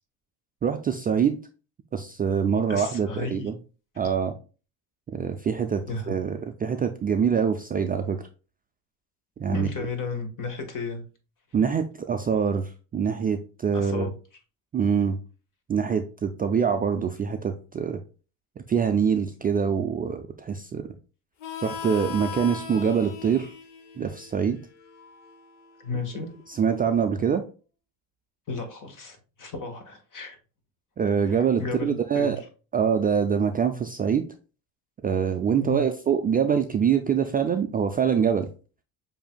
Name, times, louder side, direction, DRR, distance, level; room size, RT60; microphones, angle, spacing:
voice 1, 0.6-1.4 1.9-3.5 4.0-4.3 5.1-8.2 9.4-9.7 11.5-14.1 14.7-15.2 15.7-18.0 18.7-20.9 21.6-23.5 24.0-24.6 26.5-27.4 31.0-32.4 32.7-34.2 35.0-38.5, right 7 dB, 20° right, 6 dB, 0.3 m, -24 dB
voice 2, 2.7-3.5 3.9-4.1 5.9-6.2 9.5-11.0 13.7-14.1 25.8-26.3 28.5-30.4 31.2-32.3 35.6-35.8, left 3 dB, 45° left, 5 dB, 1.5 m, -33 dB
Harmonica, 21.4-26.7, left 7 dB, 65° left, 1.0 m, -40 dB
6.9 x 2.7 x 2.2 m, 0.34 s
supercardioid pair, 75°, 44 cm